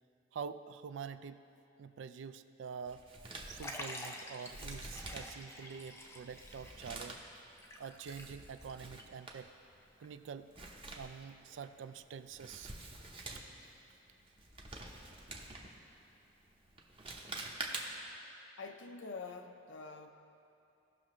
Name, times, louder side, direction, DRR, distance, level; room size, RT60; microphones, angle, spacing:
voice 1, 0.3-1.4 1.8-3.0 3.5-7.2 7.8-9.5 10.0-10.5 10.9-12.7, right 6 dB, 75° right, 11 dB, 0.3 m, -46 dB
Male speech man speaking, 2.9-18.2, right 2 dB, 30° right, 0.8 m, -48 dB
Liquid, 3.6-8.7 9.0-9.1 10.0-10.1, left 1 dB, 15° left, 0.6 m, -48 dB
voice 2, 18.6-20.1, left 4 dB, 75° left, 5 dB, 0.5 m, -46 dB
16.5 x 6.0 x 3.1 m, 2.8 s
head